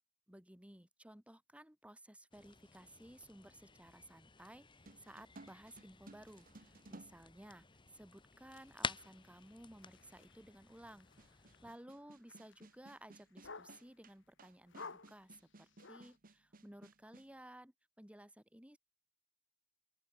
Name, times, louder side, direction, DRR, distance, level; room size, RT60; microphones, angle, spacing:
voice 1, 0.3-7.6 7.9-18.8, right 1 dB, 5° right, 1.8 m, -57 dB
sound 1, 2.3-11.8, left 5 dB, 25° left, 1.1 m, -50 dB
sound 2, 4.9-8.0 8.9-9.0 11.2-17.3, right 2 dB, 45° right, 1.3 m, -59 dB
sound 3, 8.5-14.1 14.7-16.2, left 4 dB, 65° left, 2.3 m, -56 dB
open air
head